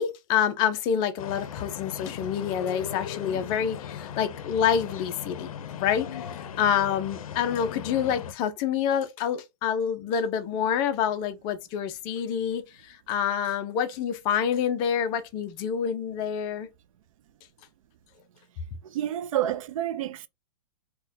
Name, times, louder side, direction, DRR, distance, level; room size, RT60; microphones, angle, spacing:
voice 1, 0.0-16.7, left 8 dB, 25° left, 0.4 m, -27 dB
sound 1, 1.2-8.3, left 8 dB, 80° left, 0.5 m, -38 dB
voice 2, 18.8-20.3, right 12 dB, 70° right, 0.4 m, -29 dB
4.2 x 2.2 x 2.6 m
hypercardioid pair, 150°, 18 cm